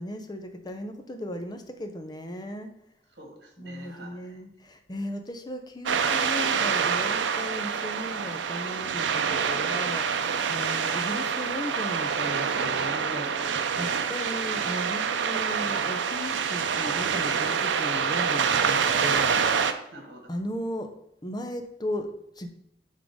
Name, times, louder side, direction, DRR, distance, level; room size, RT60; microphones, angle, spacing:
voice 1, 0.0-2.7 3.6-13.3 13.8-19.4 20.3-20.9 21.2-22.5, left 1 dB, 25° left, 7 dB, 0.6 m, -36 dB
voice 2, 3.1-4.4 10.5-10.8 13.1-14.0 19.5-20.3, equal, 65° right, 2 dB, 1.5 m, -44 dB
sound 1, 5.9-19.7, right 6 dB, 85° right, 0.5 m, -26 dB
8.8 x 3.7 x 3.6 m, 0.77 s
head